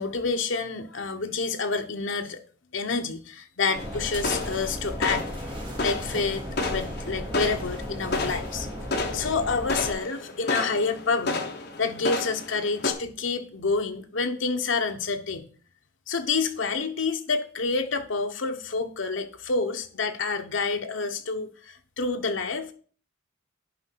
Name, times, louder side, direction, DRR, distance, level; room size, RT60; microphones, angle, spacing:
voice 1, 0.0-2.4 2.7-5.3 5.8-8.7 9.1-11.4 11.8-15.5 16.1-22.7, left 4 dB, 70° left, 0.9 m, -28 dB
sound 1, 3.7-12.9, left 3 dB, 50° left, 1.1 m, -32 dB
sound 2, 3.7-9.9, equal, 25° right, 2.0 m, -35 dB
10.5 x 4.9 x 4.6 m
head